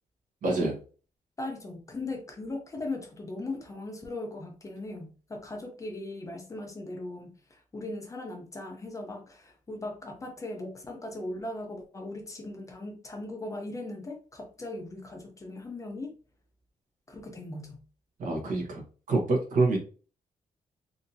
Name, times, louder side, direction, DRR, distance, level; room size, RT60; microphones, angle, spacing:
voice 1, 0.4-0.8 18.2-19.8, right 3 dB, 65° right, 0 dB, 1.3 m, -27 dB
voice 2, 1.4-16.1 17.1-17.8, left 2 dB, 20° left, 3 dB, 0.6 m, -39 dB
3.7 x 2.7 x 2.6 m, 0.38 s
wide cardioid pair, 175°, 14 cm